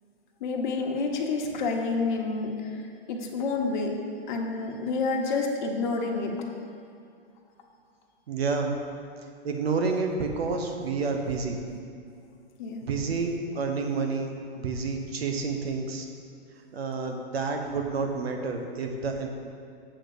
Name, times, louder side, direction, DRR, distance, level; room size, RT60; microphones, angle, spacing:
voice 1, 0.4-2.8 3.1-4.0 4.3-6.4 12.6-12.9, left 3 dB, 50° left, 2 dB, 1.1 m, -29 dB
voice 2, 8.3-8.7 9.4-11.6 12.8-16.1 16.7-19.3, right 4 dB, 75° right, 4 dB, 1.1 m, -29 dB
7.6 x 3.8 x 6.6 m, 2.4 s
hypercardioid pair, 135°, 31 cm